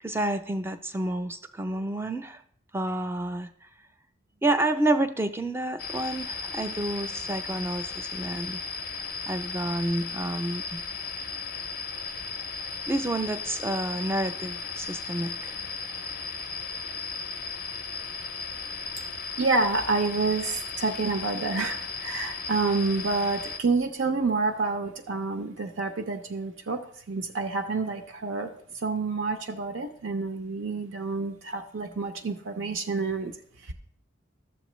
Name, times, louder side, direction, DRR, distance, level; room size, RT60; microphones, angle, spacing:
voice 1, 0.0-2.4 2.7-3.5 4.4-8.6 9.3-10.8 12.9-15.7, right 1 dB, 10° right, 9 dB, 0.4 m, -29 dB
sound 1, 5.8-23.6, left 4 dB, 45° left, 0.4 m, -36 dB
voice 2, 19.4-33.3 33.6-33.7, right 3 dB, 75° right, 6 dB, 0.5 m, -28 dB
11.5 x 7.3 x 3.1 m, 0.65 s
head